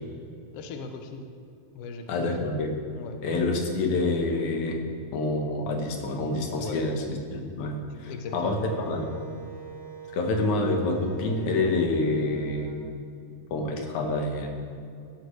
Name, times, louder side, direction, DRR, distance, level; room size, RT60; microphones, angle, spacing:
voice 1, 0.5-1.3 1.7-2.5 2.9-3.2 6.6-6.9 7.9-8.6, left 4 dB, 65° left, 5 dB, 1.7 m, -39 dB
voice 2, 2.1-2.7 3.2-4.8 5.1-9.1 10.1-12.8 13.5-14.5, left 2 dB, 85° left, 3 dB, 2.7 m, -27 dB
Wind instrument woodwind instrument, 8.3-12.9, right 7 dB, 40° right, 0.9 m, -44 dB
15.5 x 12.5 x 3.3 m, 2.5 s
omnidirectional pair, 3.3 m